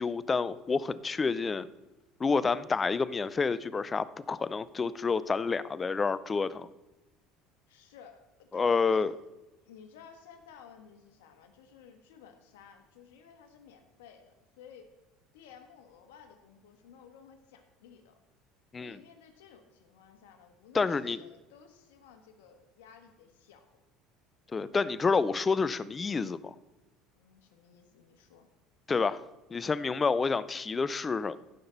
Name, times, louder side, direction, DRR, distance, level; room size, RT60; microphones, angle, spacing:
voice 1, 0.0-1.7 2.2-6.7 8.5-9.1 18.7-19.0 20.7-21.2 24.5-26.5 28.9-29.2 29.5-31.4, left 4 dB, 25° left, 17 dB, 0.5 m, -29 dB
voice 2, 7.7-9.1 9.6-15.0 15.3-18.2 18.8-23.8 27.1-28.5, left 7 dB, 85° left, 6 dB, 1.4 m, -55 dB
15.0 x 5.9 x 4.0 m, 1.0 s
supercardioid pair, 90°, 0 cm